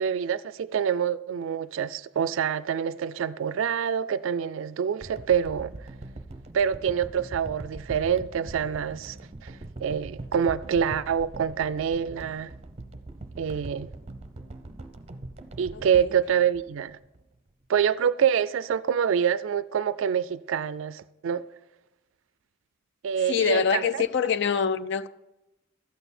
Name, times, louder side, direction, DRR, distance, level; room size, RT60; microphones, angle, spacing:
voice 1, 0.0-5.7 6.5-9.2 9.4-9.5 9.8-12.5 13.4-13.9 15.6-17.0 17.7-21.4 23.0-24.0, right 8 dB, 70° right, 0.3 m, -26 dB
sound 1, 5.0-17.2 17.8-17.9, right 2 dB, 30° right, 0.7 m, -42 dB
voice 2, 15.7-16.1 23.3-25.1, left 6 dB, 60° left, 0.4 m, -25 dB
12.5 x 8.9 x 4.3 m
head